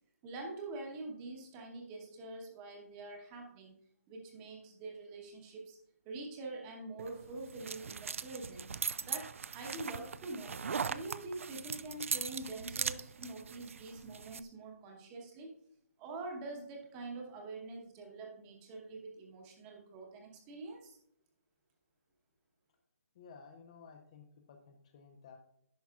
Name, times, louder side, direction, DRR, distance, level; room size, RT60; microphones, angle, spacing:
voice 1, 0.2-3.8 4.1-5.8 6.0-8.7 9.0-10.6 10.9-15.5 16.0-21.0, right 2 dB, 15° right, 1 dB, 1.0 m, -45 dB
sound 1, 7.0-14.4, right 6 dB, 60° right, 0.4 m, -40 dB
voice 2, 23.1-25.4, left 5 dB, 25° left, 4 dB, 0.5 m, -55 dB
10.5 x 5.7 x 2.3 m, 0.72 s
hypercardioid pair, 170°, 8 cm